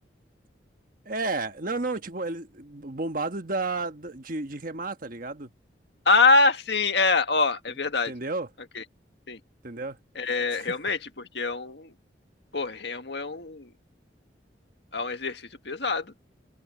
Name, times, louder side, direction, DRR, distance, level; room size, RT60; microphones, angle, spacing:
voice 1, 1.0-5.5 8.1-8.5 9.6-10.0 10.6-10.8, right 3 dB, 50° right, 1.4 m, -32 dB
voice 2, 6.1-8.1 8.7-8.8 9.3-9.4 10.2-11.9 12.5-13.7 14.9-16.1, left 3 dB, 65° left, 1.8 m, -24 dB
open air
head